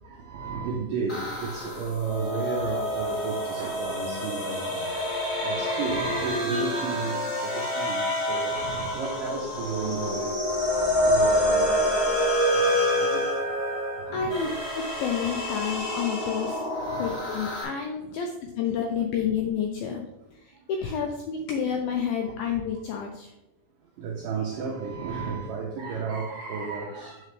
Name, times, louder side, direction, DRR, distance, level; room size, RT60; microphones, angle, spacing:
voice 1, 0.0-4.9 5.2-10.3 11.0-13.3 14.0-14.5 16.7-17.3 20.9-21.0 22.2-22.3 24.0-27.3, right 5 dB, 90° right, 1.9 m, -33 dB
sound 1, 1.1-17.6, equal, 55° left, 1.0 m, -27 dB
voice 2, 14.1-20.0 20.4-23.3, left 7 dB, 85° left, 2.1 m, -30 dB
8.3 x 5.1 x 3.2 m
omnidirectional pair, 4.7 m